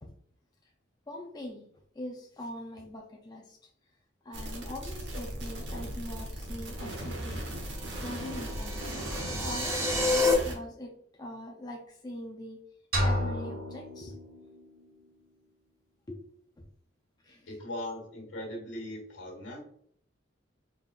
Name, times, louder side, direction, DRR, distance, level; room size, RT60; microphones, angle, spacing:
voice 1, 1.1-1.7 1.9-3.7 4.2-7.5 8.0-8.9 9.4-12.6 13.0-14.2 16.1-16.2 16.6-16.7 17.2-17.5, left 1 dB, 20° left, 1 dB, 0.4 m, -42 dB
sound 1, 4.3-10.5, right 1 dB, 65° right, 1.2 m, -37 dB
sound 2, 7.8-10.3, left 2 dB, 15° right, 0.8 m, -30 dB
sound 3, 12.9-14.9, equal, 50° right, 1.5 m, -31 dB
voice 2, 17.5-19.6, left 1 dB, 75° left, 0 dB, 1.5 m, -39 dB
4.2 x 3.6 x 2.4 m, 0.64 s
head